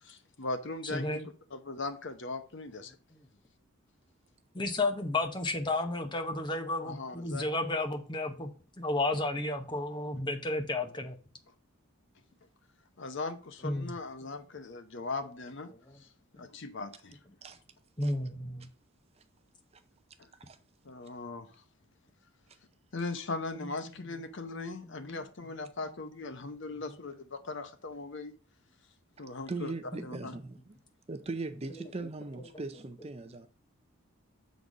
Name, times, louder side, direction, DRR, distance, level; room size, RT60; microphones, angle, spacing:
voice 1, 0.0-1.2 1.5-3.0 6.8-7.4 13.0-15.7 16.0-16.1 16.3-17.2 20.2-20.3 20.8-21.6 22.9-28.3 29.2-29.7 30.0-30.3, left 3 dB, 55° left, 0.7 m, -39 dB
voice 2, 0.8-1.3 3.1-3.2 4.5-8.5 8.8-11.2 13.6-13.9 18.0-18.7 23.6-24.1 24.5-25.3 31.8-31.9, left 2 dB, 20° left, 0.9 m, -33 dB
voice 3, 29.5-30.8 31.1-33.5, right 3 dB, 30° right, 0.5 m, -39 dB
6.7 x 4.1 x 6.0 m
head